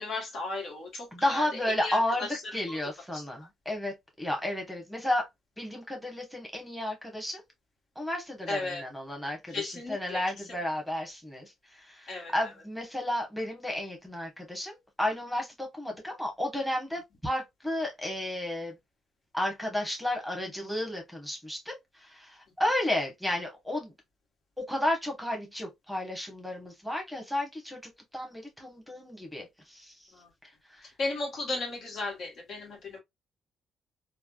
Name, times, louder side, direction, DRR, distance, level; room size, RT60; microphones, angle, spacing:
voice 1, 0.0-1.5 1.8-2.4 2.7-2.8 3.1-3.2 8.5-8.8 9.5-10.2 12.1-12.5 30.1-30.3 31.0-33.0, left 3 dB, 65° left, 1.1 m, -35 dB
voice 2, 1.1-5.3 5.6-7.4 7.9-18.8 19.3-23.9 24.6-30.0 30.4-30.9, left 1 dB, ahead, 1.0 m, -33 dB
3.3 x 2.1 x 2.2 m
cardioid pair, 90°, 0 cm